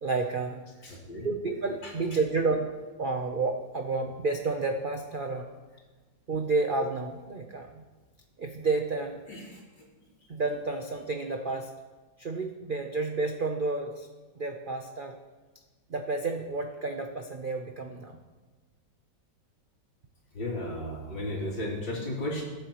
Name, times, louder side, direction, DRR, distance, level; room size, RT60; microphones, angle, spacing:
voice 1, 0.0-0.6 1.2-2.7 3.0-5.5 6.3-7.8 8.4-9.2 10.3-11.7 12.2-14.1 14.3-15.2 15.9-18.2, right 3 dB, 75° right, 4 dB, 0.4 m, -30 dB
voice 2, 0.8-1.3 9.3-9.6 20.3-22.4, left 1 dB, 85° left, -4 dB, 3.8 m, -34 dB
21.5 x 8.2 x 3.0 m, 1.3 s
omnidirectional pair, 2.0 m